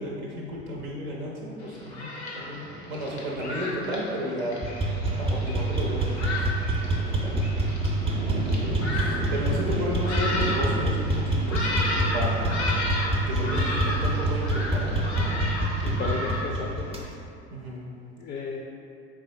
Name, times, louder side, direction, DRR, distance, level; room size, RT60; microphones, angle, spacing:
voice 1, 0.0-4.6 5.1-6.5 7.0-7.4 8.9-12.7 13.3-15.4 17.5-17.8, equal, 70° right, -3 dB, 0.6 m, -33 dB
Thunderstorm, 1.6-16.4, left 1 dB, 85° left, 0.6 m, -33 dB
sound 1, 4.6-17.1, right 1 dB, 20° right, 0.6 m, -26 dB
voice 2, 15.8-17.1 18.2-18.6, left 5 dB, 30° left, 0 dB, 0.4 m, -34 dB
4.6 x 3.4 x 2.7 m, 2.6 s
figure-of-eight pair, 60°, 32 cm